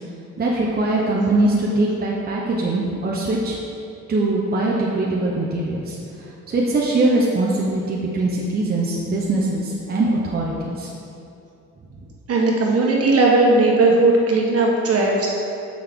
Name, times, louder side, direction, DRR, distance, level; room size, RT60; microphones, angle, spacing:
voice 1, 0.4-3.6 4.1-5.9 6.5-10.9, right 2 dB, 30° right, -4 dB, 0.8 m, -21 dB
voice 2, 12.3-15.3, right 2 dB, 50° right, -2 dB, 1.3 m, -17 dB
6.3 x 5.9 x 3.6 m, 2.6 s
cardioid pair, 90°, 30 cm